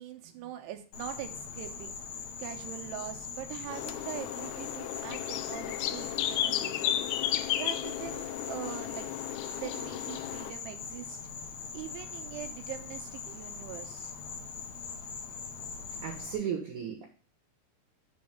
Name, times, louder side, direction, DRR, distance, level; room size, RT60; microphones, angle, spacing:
voice 1, 0.0-1.9 2.4-9.1 9.5-11.2 11.7-14.1, right 12 dB, 80° right, 6 dB, 2.9 m, -43 dB
Insect, 0.9-16.4, left 5 dB, 65° left, 2.6 m, -42 dB
sound 1, 3.7-10.5, left 12 dB, 90° left, 2.8 m, -34 dB
voice 2, 16.0-17.0, right 8 dB, 65° right, 2 dB, 2.1 m, -35 dB
7.1 x 4.0 x 6.5 m, 0.39 s
omnidirectional pair, 4.9 m